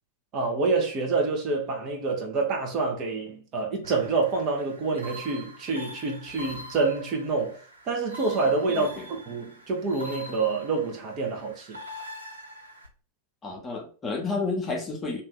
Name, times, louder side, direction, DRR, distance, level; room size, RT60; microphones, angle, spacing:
voice 1, 0.3-11.8, right 3 dB, 35° right, 0.9 m, -27 dB
sound 1, 3.8-12.9, equal, 85° right, 0.7 m, -44 dB
voice 2, 8.7-9.1 13.4-15.2, left 3 dB, 20° left, 0.9 m, -31 dB
2.6 x 2.6 x 3.9 m
figure-of-eight pair, 90°, 0 cm